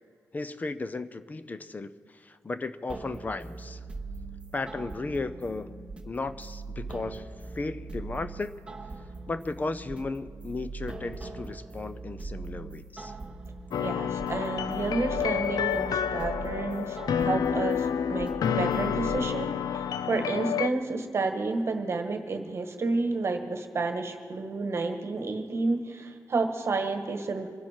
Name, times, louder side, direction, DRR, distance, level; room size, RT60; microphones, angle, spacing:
voice 1, 0.3-3.8 4.5-7.3 7.5-8.5 9.3-13.1, left 3 dB, 25° left, 13 dB, 0.5 m, -35 dB
sound 1, 2.9-19.2, right 3 dB, 15° right, 0.8 m, -41 dB
sound 2, 13.7-20.7, left 8 dB, 80° left, 0.4 m, -29 dB
voice 2, 13.8-27.5, right 3 dB, 40° right, 6 dB, 1.4 m, -30 dB
25.0 x 10.5 x 4.4 m, 2.2 s
wide cardioid pair, 170°, 7 cm